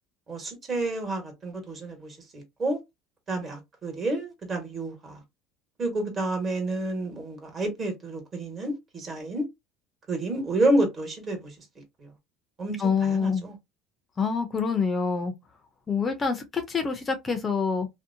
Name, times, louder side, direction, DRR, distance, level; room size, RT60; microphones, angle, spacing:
voice 1, 0.3-2.8 3.3-5.2 5.8-9.4 10.1-11.5 12.6-13.5, right 2 dB, 30° right, 1.3 m, -29 dB
voice 2, 12.8-13.5 14.2-15.3 15.9-17.9, left 5 dB, 25° left, 0.5 m, -26 dB
2.7 x 2.1 x 2.6 m
supercardioid pair, 115°, 0 cm